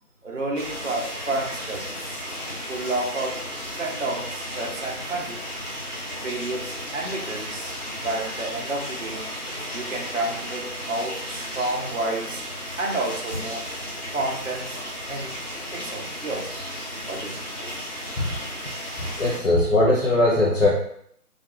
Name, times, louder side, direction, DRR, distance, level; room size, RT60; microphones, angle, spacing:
voice 1, 0.2-2.3 2.7-3.5 3.8-5.4 6.2-7.7 8.0-9.3 9.7-12.4 12.8-13.7 14.1-15.4 15.7-16.6 17.1-17.4, right 2 dB, 55° right, -1 dB, 0.5 m, -30 dB
sound 1, 0.5-19.4, equal, 40° left, 1.2 m, -34 dB
voice 2, 19.2-20.7, left 2 dB, 55° left, -5 dB, 0.6 m, -20 dB
2.3 x 2.1 x 2.9 m, 0.67 s
figure-of-eight pair, 180°, 46 cm